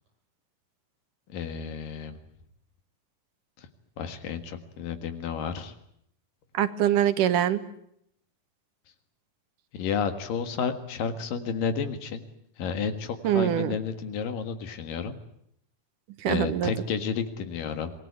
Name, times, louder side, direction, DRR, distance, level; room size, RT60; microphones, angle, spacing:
voice 1, 1.3-2.2 3.6-3.7 4.0-5.7 9.7-12.3 12.6-15.2 16.3-17.9, left 6 dB, 85° left, 9 dB, 3.5 m, -31 dB
voice 2, 6.6-7.6 13.2-13.8 16.2-16.7, right 10 dB, 75° right, 11 dB, 2.7 m, -24 dB
26.0 x 19.5 x 9.5 m, 0.73 s
omnidirectional pair, 3.8 m